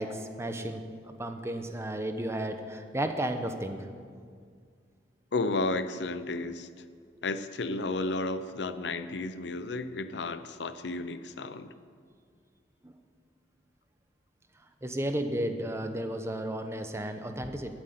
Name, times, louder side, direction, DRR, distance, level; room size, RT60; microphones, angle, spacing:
voice 1, 0.0-3.9 12.8-12.9 14.8-17.7, right 1 dB, 15° right, 6 dB, 0.8 m, -33 dB
voice 2, 5.3-6.7 7.2-11.7, left 2 dB, 75° left, 12 dB, 0.7 m, -32 dB
13.0 x 8.0 x 9.3 m, 2.1 s
head